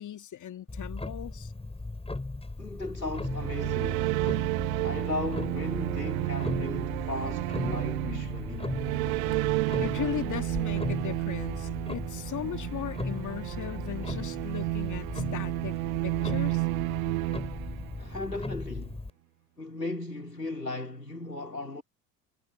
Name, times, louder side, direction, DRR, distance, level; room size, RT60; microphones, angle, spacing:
voice 1, 0.0-1.5 9.8-15.7 16.0-16.6, left 10 dB, 40° left, 2.7 m, -37 dB
Clock, 0.7-19.1, left 2 dB, 10° left, 7.2 m, -37 dB
voice 2, 2.6-4.1 4.8-8.8 18.0-19.0 19.6-21.8, left 2 dB, 90° left, 5.1 m, -36 dB
sound 1, 3.1-18.3, right 23 dB, 60° right, 0.6 m, -31 dB
figure-of-eight pair, 55°, 48 cm